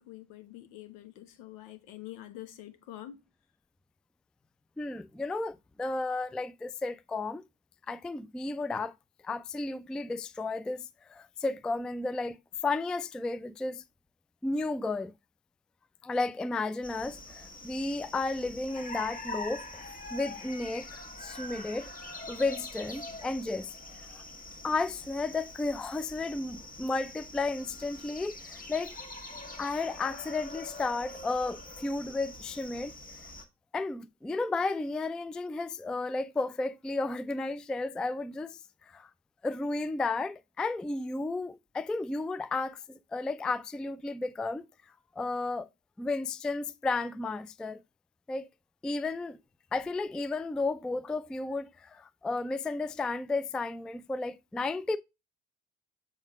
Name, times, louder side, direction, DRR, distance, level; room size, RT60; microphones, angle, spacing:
voice 1, 0.0-3.2, left 14 dB, 75° left, 1.1 m, -46 dB
voice 2, 4.8-7.4 7.9-8.9 9.2-12.4 12.6-13.8 14.4-15.1 16.0-19.7 20.1-21.9 22.3-23.7 24.1-24.2 24.6-29.0 29.6-32.9 33.7-39.1 39.4-42.8 43.1-44.7 45.2-45.7 46.0-47.8 48.3-48.5 48.8-49.4 49.7-55.0, left 3 dB, ahead, 0.3 m, -33 dB
sound 1, 16.8-33.5, left 2 dB, 20° left, 1.5 m, -44 dB
7.3 x 3.8 x 3.4 m
hypercardioid pair, 55°, 45 cm